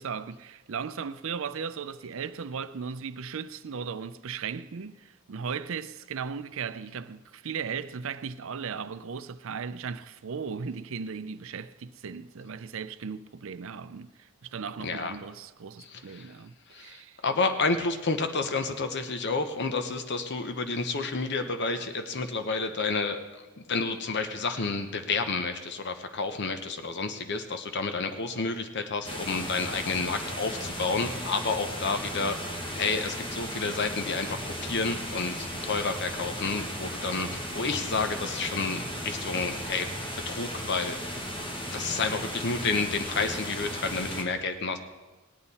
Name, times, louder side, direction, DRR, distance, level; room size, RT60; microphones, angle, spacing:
voice 1, 0.0-17.2, right 6 dB, 65° right, 0.5 m, -37 dB
voice 2, 14.8-15.2 15.8-16.3 16.7-23.2 23.6-32.4 32.7-39.9 40.3-41.2 41.7-44.8, left 4 dB, 55° left, 0.8 m, -30 dB
sound 1, 29.0-44.2, equal, 25° left, 1.6 m, -36 dB
19.5 x 8.8 x 4.2 m
head